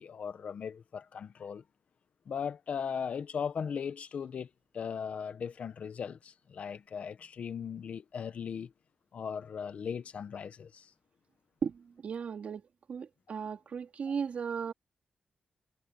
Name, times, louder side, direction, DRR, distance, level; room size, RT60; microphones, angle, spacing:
voice 1, 0.0-1.6 2.2-8.7 9.1-10.9, left 7 dB, 65° left, 1.5 m, -38 dB
voice 2, 11.6-14.7, right 6 dB, 65° right, 4.0 m, -36 dB
cardioid pair, 85°, 2 cm